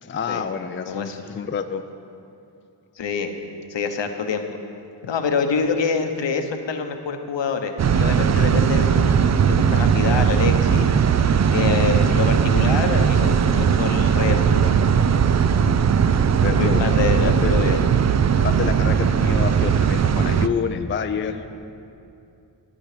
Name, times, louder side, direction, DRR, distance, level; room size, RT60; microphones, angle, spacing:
voice 1, 0.0-1.8 16.3-16.9 17.2-17.6 18.4-21.5, left 6 dB, 30° left, 8 dB, 0.4 m, -28 dB
voice 2, 0.8-1.2 3.0-3.3 3.7-4.4 5.0-9.1 9.5-10.9 11.5-14.7 16.5-17.8, left 5 dB, 70° left, 6 dB, 1.0 m, -25 dB
sound 1, 7.8-20.5, right 7 dB, 40° right, 0.4 m, -18 dB
12.5 x 8.8 x 5.0 m, 2.6 s
wide cardioid pair, 85°, 45 cm